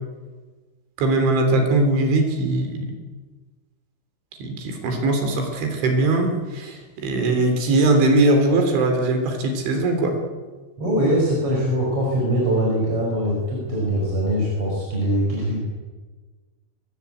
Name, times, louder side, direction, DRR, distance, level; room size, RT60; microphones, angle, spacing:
voice 1, 1.0-2.9 4.4-10.2, right 2 dB, 65° right, 5 dB, 5.5 m, -20 dB
voice 2, 10.8-15.6, equal, 25° right, -3 dB, 5.9 m, -22 dB
24.5 x 19.0 x 8.4 m, 1.3 s
omnidirectional pair, 5.9 m